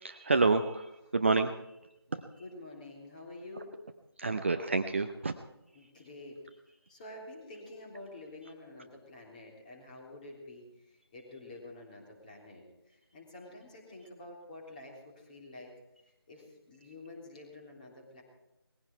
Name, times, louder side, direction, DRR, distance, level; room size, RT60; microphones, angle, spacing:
voice 1, 0.2-1.6 2.1-2.2 4.2-5.3, right 3 dB, 30° right, 7 dB, 0.6 m, -28 dB
voice 2, 2.4-3.8 5.7-6.4 6.9-15.7 16.3-18.2, left 2 dB, 20° left, 0 dB, 3.4 m, -49 dB
20.0 x 15.5 x 4.6 m, 0.95 s
figure-of-eight pair, 165°, 13 cm